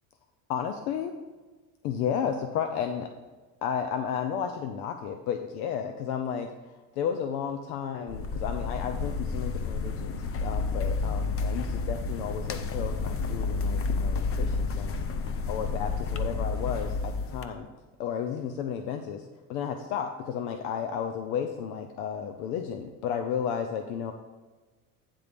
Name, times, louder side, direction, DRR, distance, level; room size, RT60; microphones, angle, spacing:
voice 1, 0.5-1.1 1.8-3.1 3.6-15.0 15.5-17.7 18.0-24.1, left 8 dB, 85° left, 6 dB, 0.7 m, -33 dB
sound 1, 8.1-17.4, left 4 dB, 30° left, 0.6 m, -30 dB
9.1 x 3.8 x 6.8 m, 1.3 s
supercardioid pair, 100°, 45 cm